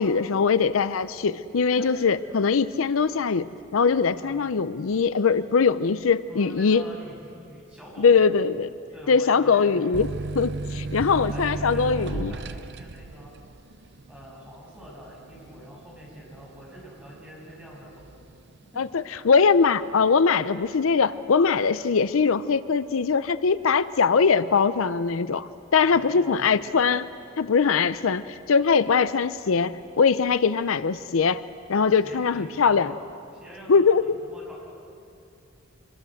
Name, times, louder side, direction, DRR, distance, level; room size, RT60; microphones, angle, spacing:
voice 1, 0.0-3.5 3.7-6.8 8.0-8.7 9.1-10.1 10.3-12.3 18.8-27.1 27.4-31.4 31.7-32.9 33.7-34.1, left 5 dB, 80° left, 14 dB, 0.6 m, -21 dB
voice 2, 6.3-8.5 8.9-9.9 11.2-13.3 14.1-18.1 25.9-26.6 31.9-33.0 33.3-33.8 34.2-34.6, equal, 5° right, -4 dB, 7.1 m, -45 dB
sound 1, 9.9-17.2 17.6-18.4, right 3 dB, 55° right, 0.7 m, -34 dB
25.5 x 21.5 x 7.8 m, 2.6 s
head